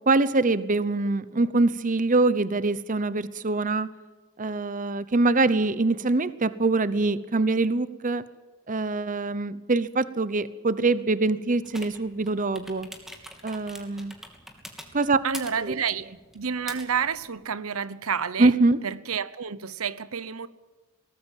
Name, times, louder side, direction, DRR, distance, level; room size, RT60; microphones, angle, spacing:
voice 1, 0.1-3.9 4.4-8.2 8.7-12.9 13.4-14.1 14.9-15.2 15.6-15.8 18.4-18.8, right 3 dB, 40° right, 0.8 m, -24 dB
sound 1, 11.6-17.5, equal, ahead, 2.9 m, -45 dB
voice 2, 15.2-18.5 18.8-20.5, right 7 dB, 80° right, 0.9 m, -29 dB
23.0 x 18.5 x 7.4 m
head